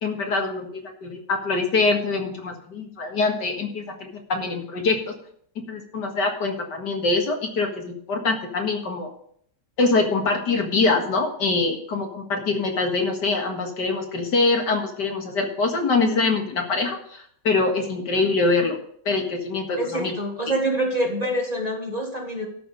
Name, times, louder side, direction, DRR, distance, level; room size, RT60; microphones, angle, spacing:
voice 1, 0.0-5.1 5.7-9.1 9.8-18.8 19.1-20.1, left 3 dB, 65° left, 2 dB, 2.4 m, -24 dB
voice 2, 19.8-22.5, right 1 dB, 20° right, 0 dB, 1.6 m, -26 dB
13.0 x 6.0 x 6.8 m, 0.64 s
omnidirectional pair, 2.0 m